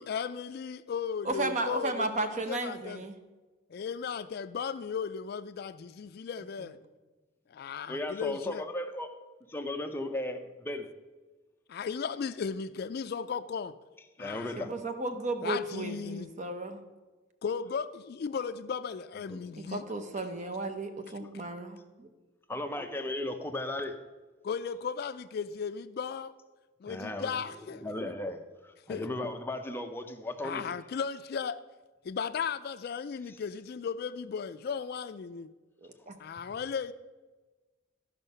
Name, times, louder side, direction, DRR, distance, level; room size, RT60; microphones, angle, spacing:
voice 1, 0.0-3.0 3.7-6.8 7.5-8.6 11.7-13.7 14.2-14.7 15.4-16.3 17.4-19.8 21.2-21.3 24.4-26.3 26.8-27.8 28.9-29.1 30.4-31.6 32.0-35.5 36.2-36.9, left 6 dB, 55° left, 12 dB, 0.3 m, -36 dB
voice 2, 1.2-3.1 14.6-16.8 19.7-22.1 35.8-36.2, right 2 dB, 40° right, 7 dB, 0.8 m, -34 dB
voice 3, 7.9-9.1 9.5-10.9 14.2-14.7 19.3-19.4 22.5-24.0 26.9-27.3 27.7-30.7, left 1 dB, 10° left, 5 dB, 0.6 m, -36 dB
12.5 x 5.6 x 5.4 m, 1.3 s
head